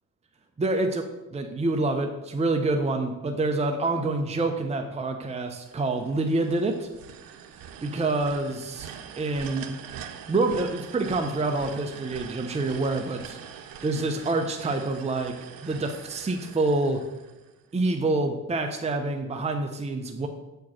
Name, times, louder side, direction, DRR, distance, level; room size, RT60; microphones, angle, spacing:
voice 1, 0.6-1.0 1.3-6.9 7.8-8.9 9.2-9.8 10.3-13.4 13.8-15.3 15.6-17.0 17.7-20.3, right 2 dB, 20° right, 4 dB, 0.8 m, -27 dB
sound 1, 5.6-17.7, right 8 dB, 80° right, 0.8 m, -43 dB
7.2 x 4.6 x 6.3 m, 1.0 s
cardioid pair, 90°, 34 cm